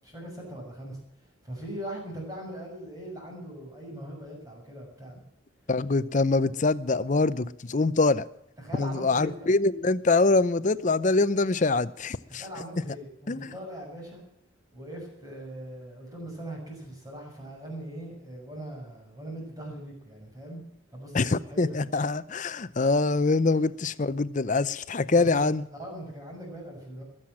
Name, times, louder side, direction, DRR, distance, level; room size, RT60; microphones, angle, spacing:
voice 1, 0.0-1.0 1.4-5.2 8.6-9.5 12.3-14.2 14.7-20.6 20.9-21.9 25.2-25.5 25.8-27.0, right 1 dB, 15° right, 6.5 m, -40 dB
voice 2, 5.7-8.3 8.8-12.4 13.3-13.5 21.1-25.6, left 3 dB, 35° left, 0.6 m, -24 dB
21.5 x 7.7 x 7.4 m
head